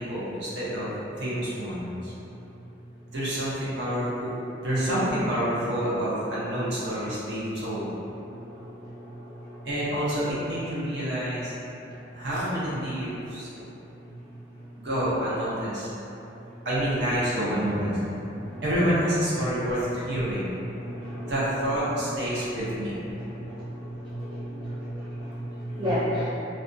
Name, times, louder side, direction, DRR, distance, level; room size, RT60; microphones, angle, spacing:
voice 1, 0.0-2.1 3.1-4.3 4.6-7.9 9.6-11.5 12.1-13.5 14.8-15.9 16.6-18.0 18.6-20.5 21.3-22.9, equal, 60° right, -9 dB, 0.7 m, -28 dB
voice 2, 8.2-9.6 13.5-13.6 16.5-16.6 18.4-18.6 19.4-19.6 20.2-20.4 20.7-21.3 21.9-22.6 23.1-26.3, equal, 25° right, -11 dB, 0.3 m, -34 dB
2.5 x 2.2 x 2.5 m, 2.9 s
head